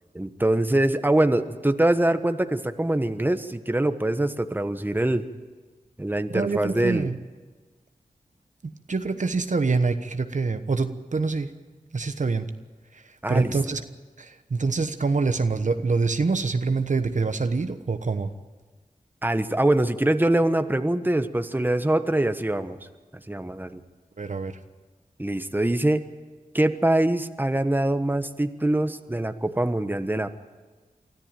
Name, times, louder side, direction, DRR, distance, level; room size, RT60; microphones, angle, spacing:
voice 1, 0.1-5.3 6.0-7.1 13.2-13.5 19.2-22.8 23.3-23.8 25.2-26.1 26.5-30.3, right 1 dB, 15° right, 9 dB, 1.2 m, -23 dB
voice 2, 6.3-7.2 8.6-11.5 11.9-12.5 12.9-13.8 14.2-18.3 24.2-24.6, right 4 dB, 60° right, 9 dB, 1.1 m, -25 dB
24.0 x 13.5 x 9.1 m, 1.3 s
cardioid pair, 40°, 15 cm